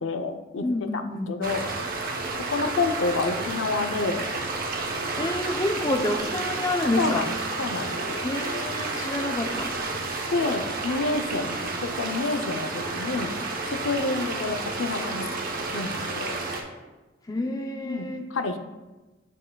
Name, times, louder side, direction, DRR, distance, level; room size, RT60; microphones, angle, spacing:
voice 1, 0.0-0.7 0.9-1.7 2.5-4.2 5.8-5.9 7.0-8.3 10.3-13.4 13.7-15.3 15.7-16.4 17.8-18.6, left 3 dB, 70° left, 7 dB, 0.5 m, -29 dB
voice 2, 0.6-1.3 5.2-7.2 8.2-9.7 17.3-18.3, left 1 dB, 20° left, 4 dB, 0.5 m, -28 dB
sound 1, 1.4-16.6, right 3 dB, 45° right, 0.9 m, -31 dB
7.4 x 6.6 x 2.3 m, 1.1 s
head